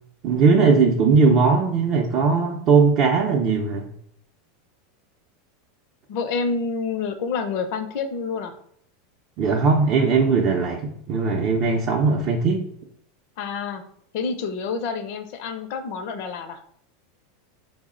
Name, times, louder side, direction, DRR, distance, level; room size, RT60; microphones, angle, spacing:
voice 1, 0.2-3.9 9.4-12.7, right 4 dB, 50° right, 0 dB, 0.5 m, -19 dB
voice 2, 6.1-8.5 13.4-13.8 14.1-16.6, left 5 dB, 60° left, 8 dB, 0.5 m, -28 dB
4.0 x 2.1 x 3.6 m, 0.66 s
supercardioid pair, 125°, 0 cm